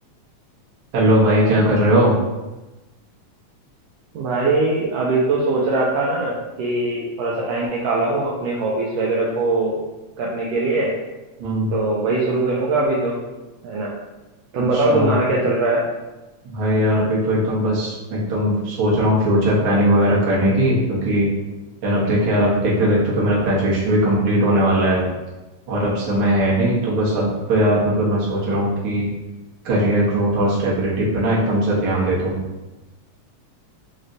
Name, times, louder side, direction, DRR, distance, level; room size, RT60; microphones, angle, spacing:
voice 1, 0.9-2.2 11.4-11.7 14.7-15.1 16.4-21.3 21.8-25.1 25.7-29.1 29.6-32.4, right 1 dB, 55° right, -6 dB, 1.6 m, -19 dB
voice 2, 4.1-9.8 10.2-10.9 11.7-13.2 13.6-13.9 14.5-15.9, right 2 dB, 80° right, -4 dB, 1.5 m, -21 dB
5.1 x 3.2 x 2.6 m, 1.1 s
omnidirectional pair, 3.4 m